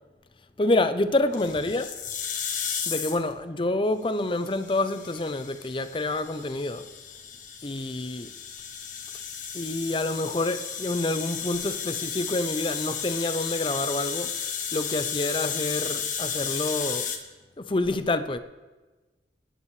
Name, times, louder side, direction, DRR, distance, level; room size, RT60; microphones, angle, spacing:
voice 1, 0.6-2.0 2.9-6.9 7.6-8.3 9.5-14.4 14.7-17.1 17.6-18.4, left 2 dB, 30° left, 0.6 m, -27 dB
sound 1, 1.3-3.3 4.4-17.2, left 7 dB, 45° left, 1.3 m, -33 dB
26.5 x 10.0 x 3.3 m
head